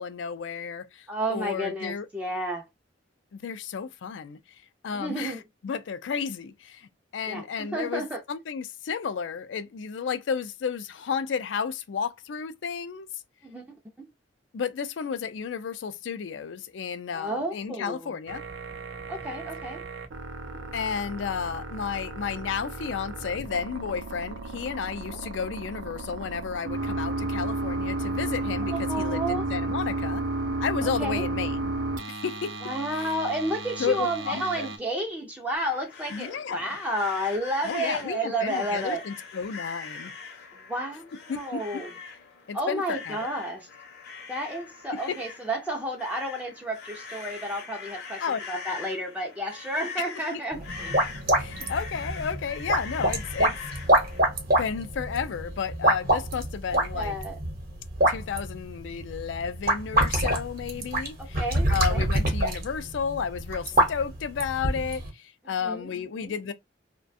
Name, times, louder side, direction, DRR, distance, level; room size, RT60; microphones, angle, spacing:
voice 1, 0.0-2.1 3.3-4.4 4.8-8.0 8.3-13.1 14.5-18.4 20.7-30.2 30.6-31.7 32.1-32.6 33.8-34.7 36.1-36.7 37.6-40.1 41.3-41.8 42.5-43.3 45.1-45.2 48.2-48.4 50.3-50.4 51.4-53.6 54.6-57.1 58.1-61.4 61.7-66.5, left 6 dB, 75° left, 0.4 m, -32 dB
voice 2, 1.1-2.7 4.9-5.4 7.3-8.2 13.4-13.8 17.1-18.2 19.1-19.8 28.7-29.4 30.8-31.3 32.6-39.0 40.5-41.9 42.5-43.7 44.3-51.0 56.7-57.4 61.2-62.0 65.6-66.3, right 1 dB, 10° right, 0.4 m, -31 dB
sound 1, 18.3-34.8, right 2 dB, 75° right, 0.5 m, -33 dB
sound 2, 35.5-54.2, left 5 dB, 60° left, 0.7 m, -42 dB
sound 3, 50.5-65.1, right 1 dB, 50° right, 0.9 m, -26 dB
2.4 x 2.2 x 2.5 m
head